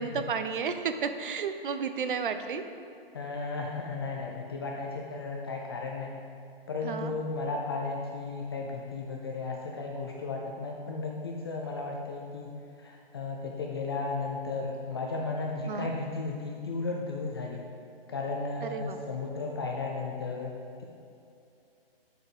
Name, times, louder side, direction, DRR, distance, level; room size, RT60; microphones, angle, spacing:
voice 1, 0.0-2.6 6.8-7.1 15.7-15.9 18.6-19.0, right 6 dB, 55° right, 9 dB, 0.7 m, -32 dB
voice 2, 3.1-6.1 6.7-12.5 12.8-17.6 18.1-20.5 20.8-20.9, left 3 dB, 25° left, -1 dB, 0.5 m, -34 dB
9.3 x 6.6 x 5.0 m, 2.6 s
hypercardioid pair, 165°, 31 cm